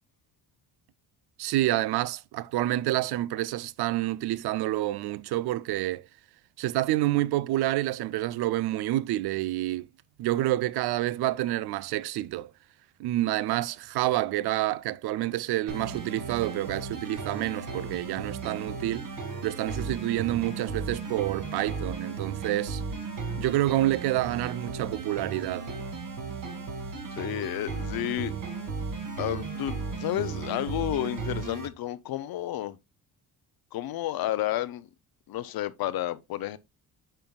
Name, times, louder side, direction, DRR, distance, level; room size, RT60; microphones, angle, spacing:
voice 1, 1.4-6.1 6.6-9.9 10.2-12.5 13.0-19.1 19.4-22.8 23.4-25.7, right 15 dB, 90° right, 0.5 m, -28 dB
sound 1, 15.7-31.7, right 4 dB, 55° right, 2.3 m, -35 dB
voice 2, 27.2-28.3 29.2-32.8 33.7-34.9 35.3-36.6, left 13 dB, 70° left, 0.6 m, -31 dB
9.0 x 5.6 x 2.2 m
cardioid pair, 140°, 38 cm